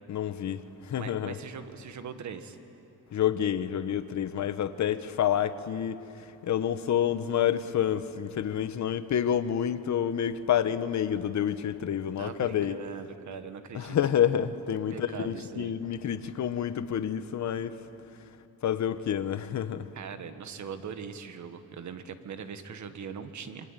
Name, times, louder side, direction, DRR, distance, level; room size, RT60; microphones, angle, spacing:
voice 1, 0.1-0.6 0.9-1.4 3.1-6.0 6.5-12.8 13.7-17.7 18.6-19.8, left 9 dB, 50° left, 1.1 m, -28 dB
voice 2, 1.0-2.6 12.2-14.0 14.9-15.7 19.9-23.7, right 6 dB, 50° right, 1.6 m, -41 dB
26.5 x 24.0 x 9.1 m
cardioid pair, 160°, 37 cm